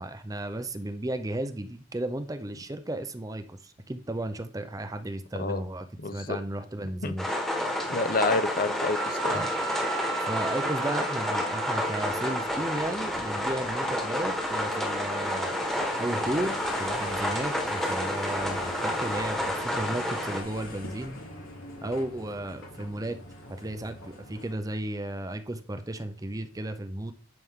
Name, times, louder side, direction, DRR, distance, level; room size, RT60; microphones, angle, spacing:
voice 1, 0.0-5.9 6.1-7.3 9.3-9.6 10.2-21.2 21.8-23.2 23.5-27.1, right 1 dB, 15° right, 9 dB, 0.6 m, -34 dB
voice 2, 6.0-6.4 7.0-7.1 7.9-9.4, left 3 dB, 45° left, 11 dB, 0.7 m, -28 dB
sound 1, 7.2-20.4, left 1 dB, ahead, 1.4 m, -30 dB
Wind instrument woodwind instrument, 8.9-12.7, right 6 dB, 65° right, 0.8 m, -37 dB
sound 2, 11.9-24.5, left 1 dB, 90° left, 4.0 m, -43 dB
11.0 x 6.0 x 3.7 m, 0.40 s
head